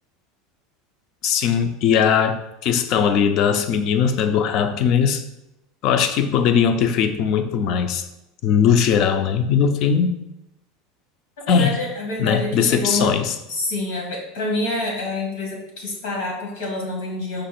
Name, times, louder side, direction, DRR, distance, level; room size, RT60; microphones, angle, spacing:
voice 1, 1.2-5.2 5.8-8.0 8.4-10.2 11.5-11.8 12.2-13.3, left 7 dB, 50° left, 9 dB, 0.4 m, -19 dB
voice 2, 11.4-13.1 13.5-17.4, left 2 dB, 90° left, -1 dB, 1.6 m, -27 dB
5.1 x 2.4 x 4.3 m, 0.87 s
supercardioid pair, 145°, 0 cm